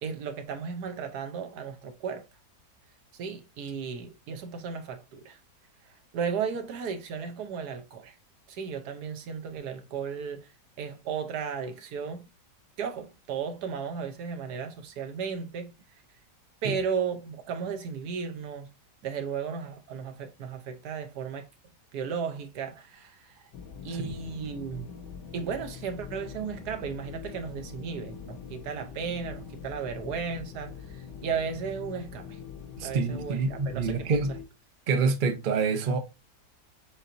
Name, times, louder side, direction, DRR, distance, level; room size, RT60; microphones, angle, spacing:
voice 1, 0.0-2.3 3.1-5.4 5.9-8.1 8.5-10.5 10.8-12.3 12.8-15.7 16.6-18.7 19.0-21.5 21.9-23.4 23.8-24.9 25.3-32.4 32.8-34.2, right 6 dB, 70° right, 1.3 m, -35 dB
sound 1, 23.5-34.5, left 7 dB, 80° left, 1.4 m, -43 dB
voice 2, 23.9-24.3 32.8-34.3 34.9-36.0, right 4 dB, 50° right, 0.6 m, -27 dB
7.0 x 2.7 x 2.6 m
omnidirectional pair, 1.9 m